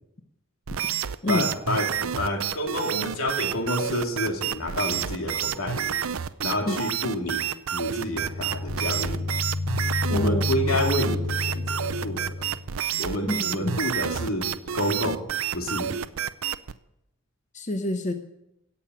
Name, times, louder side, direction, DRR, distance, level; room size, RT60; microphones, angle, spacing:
sound 1, 0.7-16.8, right 9 dB, 90° right, 0.6 m, -29 dB
voice 1, 1.3-6.0 6.4-7.4 7.7-9.3 10.1-12.5 13.0-15.3 15.5-16.0, left 1 dB, 90° left, 3 dB, 2.7 m, -29 dB
sound 2, 8.0-12.7, left 2 dB, 70° left, 1.7 m, -30 dB
voice 2, 10.1-10.4 13.2-13.8 17.5-18.1, left 1 dB, 35° left, 6 dB, 0.9 m, -27 dB
17.5 x 6.9 x 9.0 m, 0.87 s
head